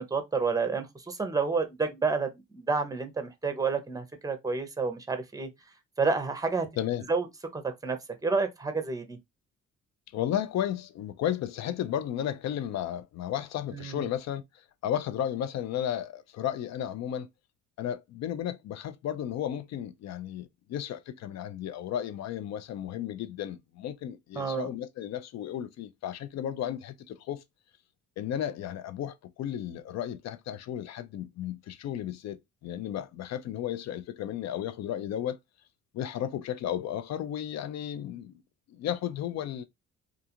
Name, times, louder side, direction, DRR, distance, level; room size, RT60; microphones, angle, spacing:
voice 1, 0.0-5.5 6.0-6.7 7.1-7.3 7.5-9.2 13.7-14.0 24.4-24.7, right 4 dB, 10° right, 0.6 m, -29 dB
voice 2, 10.1-17.3 17.8-27.4 28.2-35.4 35.9-38.4 38.7-39.6, left 10 dB, 60° left, 0.5 m, -34 dB
2.4 x 2.4 x 2.8 m
cardioid pair, 90°, 30 cm